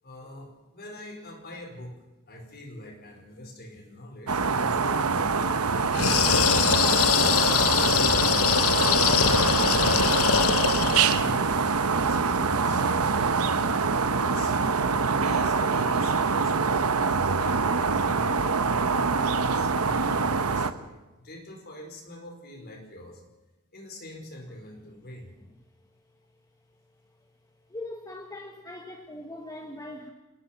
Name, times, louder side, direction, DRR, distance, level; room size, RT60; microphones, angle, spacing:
voice 1, 0.0-6.4 7.0-13.7 14.2-14.6 15.0-23.2 23.7-25.3, left 1 dB, 45° left, 4 dB, 4.8 m, -44 dB
sound 1, 4.3-20.7, right 4 dB, 75° right, 1.1 m, -25 dB
sound 2, 5.9-11.3, left 7 dB, 70° left, 1.0 m, -23 dB
voice 2, 27.7-30.1, left 1 dB, 15° left, 2 dB, 1.6 m, -40 dB
28.0 x 18.5 x 5.9 m, 1.1 s
head